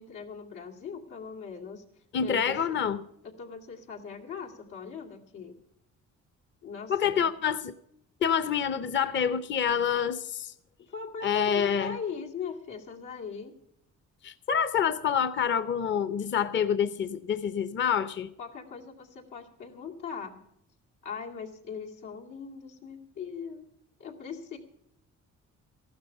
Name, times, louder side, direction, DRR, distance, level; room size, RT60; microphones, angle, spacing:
voice 1, 0.0-1.8 2.2-2.8 3.2-5.6 6.6-7.4 10.8-13.6 18.4-20.4 21.0-23.7 24.0-24.6, left 6 dB, 90° left, 2.4 m, -40 dB
voice 2, 2.1-3.0 6.9-7.7 8.2-10.5 11.2-11.9 14.2-18.3, left 7 dB, 40° left, 0.7 m, -27 dB
14.5 x 12.0 x 5.6 m
cardioid pair, 90°, 30 cm